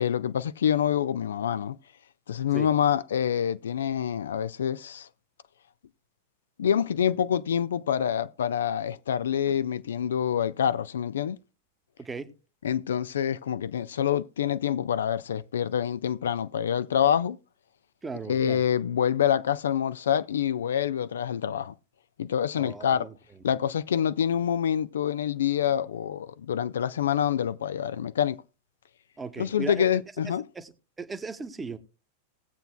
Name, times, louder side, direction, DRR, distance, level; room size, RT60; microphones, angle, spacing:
voice 1, 0.0-1.8 2.3-5.1 6.6-11.4 12.6-17.4 18.3-21.7 22.2-23.1 23.4-28.4 29.4-30.5, left 9 dB, 65° left, 0.4 m, -26 dB
voice 2, 12.0-12.3 18.0-18.6 22.5-23.1 29.2-29.9 30.2-30.7 31.0-31.8, right 4 dB, 15° right, 1.0 m, -37 dB
19.0 x 7.8 x 2.2 m
figure-of-eight pair, 90°, 0 cm